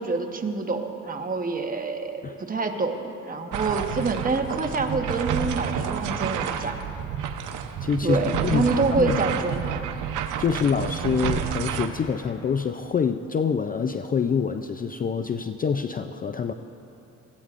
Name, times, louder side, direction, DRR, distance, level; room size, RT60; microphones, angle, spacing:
voice 1, 0.0-2.2 2.5-6.8 8.0-9.8, right 3 dB, 30° right, 4 dB, 1.1 m, -26 dB
sound 1, 3.5-11.9, right 8 dB, 85° right, 0.8 m, -29 dB
voice 2, 7.8-9.2 10.4-16.5, left 6 dB, 30° left, 8 dB, 0.4 m, -26 dB
21.0 x 15.0 x 2.5 m, 2.9 s
cardioid pair, 90°, 30 cm